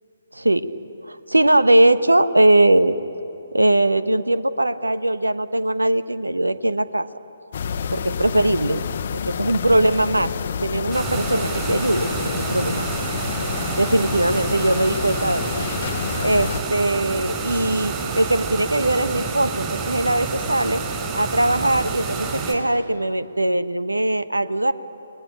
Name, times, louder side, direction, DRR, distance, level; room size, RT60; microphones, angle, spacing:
voice 1, 0.3-0.7 1.0-3.0 3.5-7.1 7.9-8.8 9.3-10.3 10.6-12.9 13.8-15.5 16.2-20.8 21.1-24.7, right 1 dB, 80° right, 12 dB, 1.2 m, -20 dB
sound 1, 7.5-16.6, left 7 dB, 40° left, 1.0 m, -28 dB
sound 2, 10.9-22.5, right 4 dB, 15° right, 4.2 m, -28 dB
29.5 x 19.5 x 9.0 m, 2.9 s
figure-of-eight pair, 140°, 0 cm